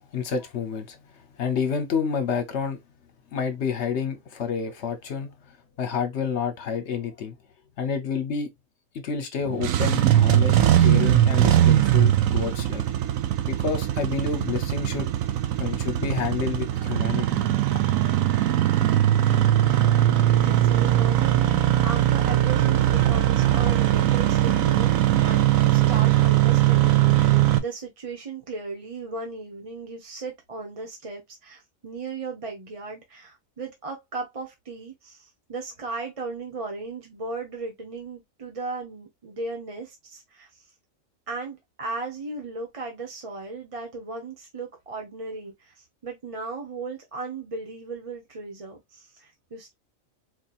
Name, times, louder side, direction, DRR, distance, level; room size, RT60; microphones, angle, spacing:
voice 1, 0.1-1.0 1.4-2.8 3.3-5.3 5.8-7.3 7.8-8.5 8.9-12.8 13.5-15.1 15.6-17.4, left 6 dB, 60° left, 1.0 m, -29 dB
Engine starting, 9.5-27.6, right 13 dB, 90° right, 1.0 m, -20 dB
voice 2, 20.4-21.5 21.8-40.7 41.3-49.7, right 3 dB, 30° right, 0.7 m, -36 dB
4.3 x 2.8 x 2.4 m
omnidirectional pair, 1.4 m